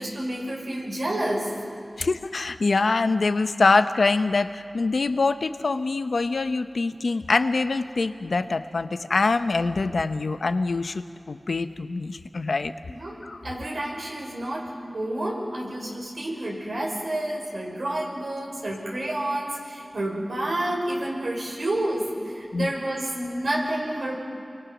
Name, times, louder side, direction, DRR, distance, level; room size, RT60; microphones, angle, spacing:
voice 1, 0.0-1.5 12.9-24.2, right 1 dB, 85° right, -2 dB, 6.1 m, -29 dB
voice 2, 2.0-12.7 13.2-13.4 22.5-22.7, left 3 dB, 90° left, 9 dB, 0.8 m, -24 dB
29.0 x 24.0 x 6.2 m, 2.4 s
wide cardioid pair, 45°, 0 cm